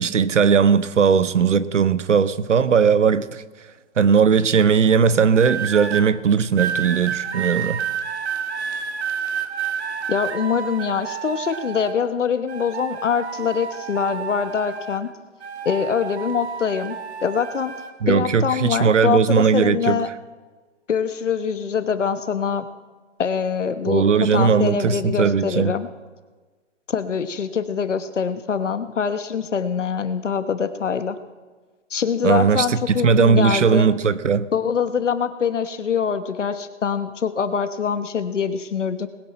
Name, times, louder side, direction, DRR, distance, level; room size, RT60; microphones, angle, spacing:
voice 1, 0.0-3.4 4.0-7.8 18.0-20.0 23.9-25.7 32.2-34.5, right 6 dB, 80° right, 0.9 m, -18 dB
sound 1, 5.3-6.0 6.6-12.1 12.5-15.1 15.4-17.9 18.7-19.0, right 7 dB, 65° right, 1.5 m, -30 dB
voice 2, 10.1-15.1 15.6-17.7 18.1-20.1 20.9-22.7 23.2-25.9 26.9-31.2 31.9-33.9 34.5-39.1, left 6 dB, 80° left, 1.3 m, -24 dB
20.5 x 9.5 x 4.4 m
hypercardioid pair, 145°, 36 cm